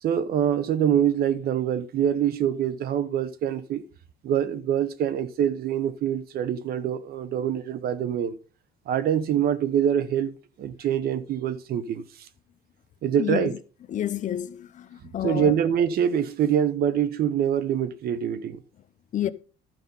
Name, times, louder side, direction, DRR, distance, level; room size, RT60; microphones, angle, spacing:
voice 1, 0.0-3.8 4.2-8.4 8.9-10.3 10.6-12.3 13.0-13.5 15.2-18.6, right 9 dB, 65° right, 1.0 m, -25 dB
voice 2, 13.2-13.5 13.9-15.6 19.1-19.3, left 11 dB, 50° left, 0.7 m, -29 dB
12.0 x 5.3 x 5.4 m
cardioid pair, 110°, 17 cm